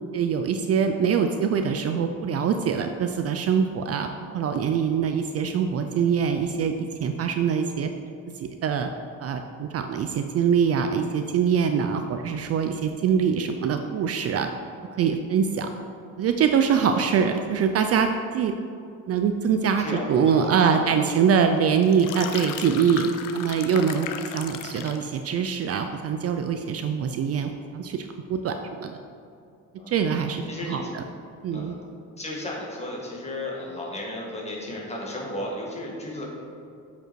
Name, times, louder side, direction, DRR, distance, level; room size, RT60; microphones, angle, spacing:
voice 1, 0.1-4.1 4.3-7.9 8.4-8.9 9.2-14.5 15.0-15.7 16.2-18.5 19.1-29.0 29.9-31.0 31.4-31.7, right 7 dB, 50° right, 6 dB, 0.4 m, -24 dB
voice 2, 19.8-21.0 29.7-29.9 30.5-30.9 31.5-31.8 32.2-36.2, left 1 dB, 20° left, -3 dB, 1.6 m, -34 dB
sound 1, 21.8-25.1, left 9 dB, 75° left, 0.6 m, -36 dB
7.5 x 5.2 x 4.6 m, 2.5 s
cardioid pair, 140°, 33 cm